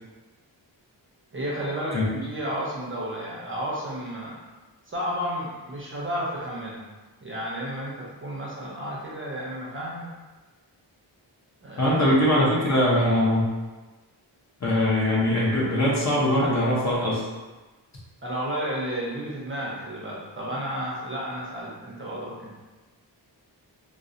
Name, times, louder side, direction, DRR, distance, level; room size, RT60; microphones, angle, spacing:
voice 1, 1.3-2.0 2.3-4.4 4.9-6.9 7.2-10.1 11.6-12.0 18.2-22.6, equal, 30° right, -6 dB, 0.5 m, -32 dB
voice 2, 11.8-13.4 14.6-17.2, left 1 dB, 40° left, -6 dB, 0.7 m, -21 dB
2.5 x 2.0 x 2.4 m, 1.2 s
wide cardioid pair, 80°, 45 cm